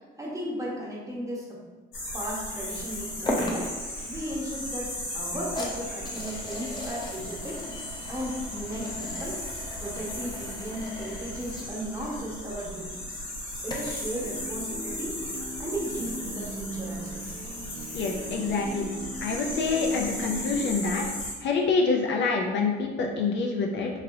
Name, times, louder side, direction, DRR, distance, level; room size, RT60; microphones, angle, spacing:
voice 1, 0.2-1.6 2.1-3.7 4.0-7.7 8.1-9.4 9.8-13.0 13.6-15.2 15.6-17.3, equal, 15° right, -4 dB, 0.9 m, -35 dB
sound 1, 1.9-21.3, left 1 dB, 85° left, 1.0 m, -37 dB
sound 2, 3.3-14.1, left 1 dB, 20° left, 0.6 m, -38 dB
sound 3, 14.2-20.8, right 2 dB, 50° right, 0.8 m, -39 dB
voice 2, 17.9-18.9 19.2-21.0 21.4-23.9, left 4 dB, 65° left, 1 dB, 0.5 m, -26 dB
2.9 x 2.8 x 2.6 m, 1.3 s
cardioid pair, 90°, 20 cm